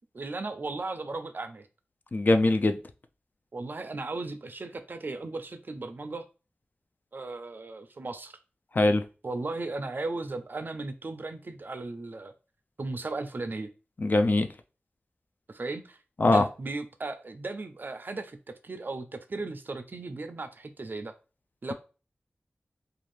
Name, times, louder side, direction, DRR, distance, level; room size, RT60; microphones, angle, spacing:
voice 1, 0.1-1.7 3.5-6.3 7.1-8.4 9.2-12.3 12.8-13.7 15.5-16.0 16.2-21.1 21.6-21.7, right 3 dB, 50° right, 9 dB, 0.4 m, -36 dB
voice 2, 2.1-2.8 8.8-9.0 14.0-14.5 16.2-16.4, left 2 dB, 45° left, 7 dB, 0.3 m, -21 dB
2.6 x 2.4 x 3.1 m, 0.33 s
wide cardioid pair, 65°, 4 cm